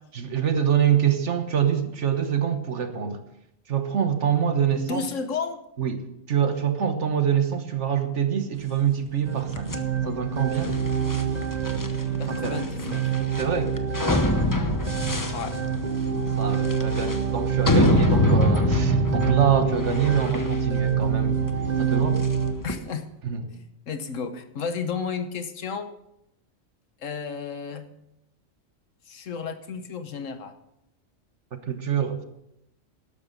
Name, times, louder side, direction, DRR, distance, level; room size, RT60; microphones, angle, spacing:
voice 1, 0.1-3.2 3.7-5.1 5.8-9.7 10.0-10.7 12.3-12.6 13.4-13.7 16.1-21.4 21.8-22.2 23.2-23.4 31.5-32.2, right 8 dB, 65° right, 8 dB, 1.5 m, -25 dB
voice 2, 4.7-5.6 12.2-13.1 15.3-15.6 22.6-23.1 23.5-23.6 23.9-25.9 27.0-27.9 29.1-30.5, left 5 dB, 75° left, 9 dB, 1.5 m, -32 dB
sound 1, 9.2-22.5, right 7 dB, 40° right, 0.9 m, -26 dB
sound 2, 9.5-22.8, left 2 dB, 15° left, 0.9 m, -26 dB
12.0 x 12.0 x 5.3 m, 0.83 s
omnidirectional pair, 1.3 m